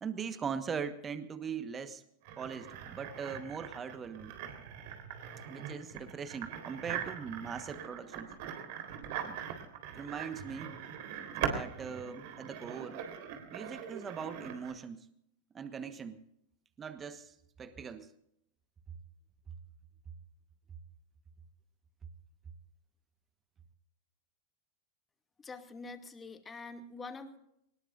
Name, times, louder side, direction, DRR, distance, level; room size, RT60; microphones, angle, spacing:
voice 1, 0.0-2.0 2.4-4.3 5.5-8.3 9.2-9.4 9.9-10.8 11.3-13.0 13.5-15.0 15.5-16.2 16.8-17.3 17.6-18.1, right 6 dB, 25° right, 11 dB, 1.3 m, -40 dB
sound 1, 2.2-14.7, right 8 dB, 55° right, 3.7 m, -41 dB
voice 2, 25.4-27.4, left 3 dB, 20° left, 5 dB, 2.4 m, -45 dB
24.0 x 20.5 x 2.6 m, 0.75 s
hypercardioid pair, 95°, 0 cm